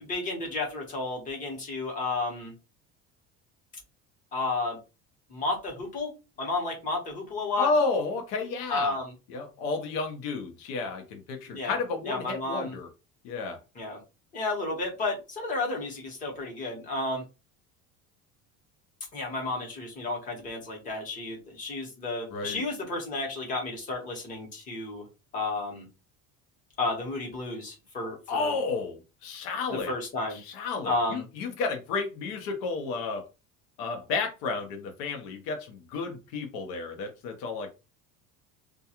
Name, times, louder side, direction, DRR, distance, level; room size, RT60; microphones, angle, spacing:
voice 1, 0.0-2.5 4.3-4.8 5.3-6.1 6.4-7.7 8.7-9.1 11.5-11.8 12.0-12.7 13.7-14.0 14.3-17.2 19.1-25.1 25.3-25.9 26.8-28.6 29.7-30.4 30.8-31.2, left 2 dB, 25° left, 0.9 m, -32 dB
voice 2, 7.6-9.0 9.3-12.9 13.2-13.6 22.3-22.6 28.3-29.9 30.3-33.3 33.8-37.7, left 4 dB, 70° left, 0.7 m, -31 dB
2.3 x 2.2 x 2.8 m
cardioid pair, 180°, 30 cm